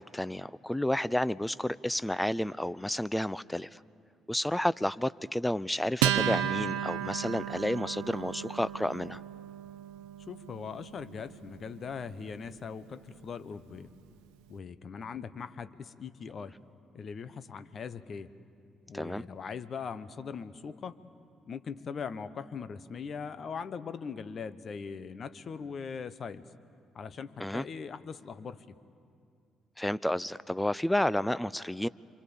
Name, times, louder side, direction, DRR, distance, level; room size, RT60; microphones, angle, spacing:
voice 1, 0.0-3.8 4.3-9.2 18.9-19.2 27.4-27.6 29.8-31.9, left 1 dB, 5° left, 18 dB, 0.6 m, -31 dB
Acoustic guitar, 6.0-12.8, right 11 dB, 80° right, 0.9 m, -34 dB
voice 2, 10.3-13.9 14.5-16.5 16.9-18.3 18.9-21.0 21.5-26.4 26.9-28.6, left 6 dB, 50° left, 13 dB, 1.1 m, -40 dB
27.0 x 26.0 x 7.1 m, 2.4 s
hypercardioid pair, 45°, 0 cm